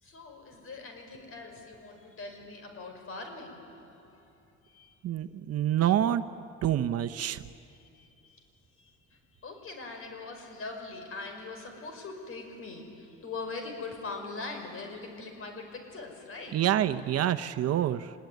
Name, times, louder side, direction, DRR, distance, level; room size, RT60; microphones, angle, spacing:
voice 1, 0.0-4.9 7.7-8.4 8.8-16.7, left 3 dB, 50° left, 5 dB, 5.7 m, -42 dB
voice 2, 5.0-6.2 6.6-7.4 16.5-18.1, right 11 dB, 55° right, 10 dB, 0.9 m, -27 dB
25.5 x 21.0 x 9.4 m, 2.5 s
cardioid pair, 105°, 29 cm